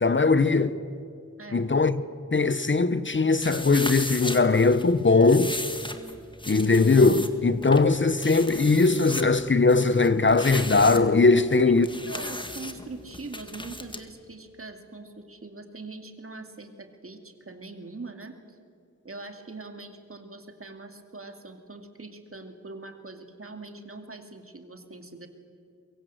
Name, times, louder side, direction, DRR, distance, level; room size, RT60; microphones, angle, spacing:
voice 1, 0.0-0.8 1.5-2.0 2.3-5.6 6.4-11.9, left 3 dB, 40° left, 0.8 m, -20 dB
sound 1, 3.4-14.0, left 1 dB, 15° left, 1.8 m, -36 dB
voice 2, 12.1-18.6 19.0-25.3, right 3 dB, 45° right, 2.4 m, -42 dB
23.0 x 23.0 x 7.8 m
wide cardioid pair, 70°, 30 cm